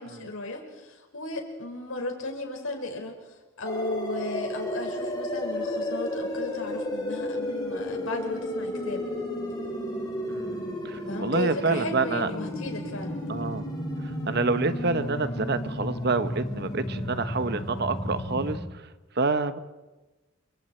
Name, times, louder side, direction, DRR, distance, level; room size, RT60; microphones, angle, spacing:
voice 1, 0.0-9.1 11.1-13.2, left 2 dB, 75° left, 2 dB, 5.4 m, -35 dB
sound 1, 3.7-18.6, left 1 dB, 20° left, 5.5 m, -32 dB
voice 2, 10.3-12.3 13.3-13.6 14.0-18.8 19.1-19.6, right 3 dB, 50° right, 11 dB, 1.1 m, -28 dB
29.0 x 25.5 x 4.5 m, 1.2 s
head